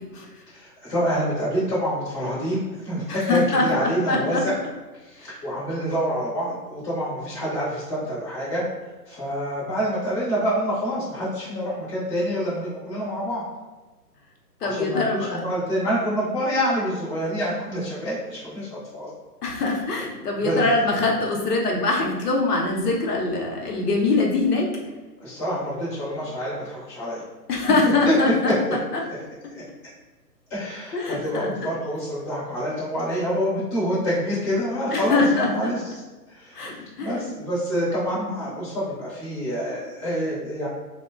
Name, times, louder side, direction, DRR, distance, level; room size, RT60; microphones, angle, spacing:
voice 1, 0.5-4.5 5.0-8.6 9.1-13.4 14.6-19.1 20.4-20.7 25.2-27.2 28.0-28.1 29.5-29.6 30.5-35.8 36.3-40.7, equal, 15° left, -11 dB, 0.6 m, -27 dB
voice 2, 3.1-4.4 14.6-15.4 19.4-24.6 27.5-28.5 28.9-29.0 30.9-31.5 34.9-35.7 36.5-37.3, left 3 dB, 65° left, -1 dB, 0.7 m, -23 dB
2.8 x 2.1 x 2.3 m, 1.2 s
hypercardioid pair, 145°, 50 cm